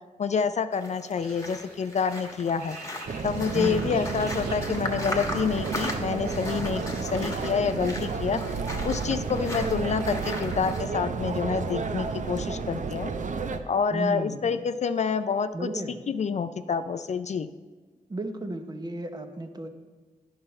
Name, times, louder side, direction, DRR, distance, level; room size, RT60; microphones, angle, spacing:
voice 1, 0.2-2.8 3.2-8.4 8.8-13.1 13.7-15.7 16.1-17.5, left 6 dB, 50° left, 11 dB, 0.4 m, -28 dB
sound 1, 0.7-10.8, left 1 dB, 20° left, 1.3 m, -38 dB
sound 2, 1.1-7.6, right 3 dB, 80° right, 1.3 m, -50 dB
sound 3, 3.1-13.6, right 5 dB, 55° right, 0.6 m, -31 dB
voice 2, 3.5-4.0 13.9-14.5 15.5-16.0 18.1-19.7, right 1 dB, 25° right, 6 dB, 0.8 m, -33 dB
9.8 x 5.6 x 4.3 m, 1.3 s
cardioid pair, 70°, 15 cm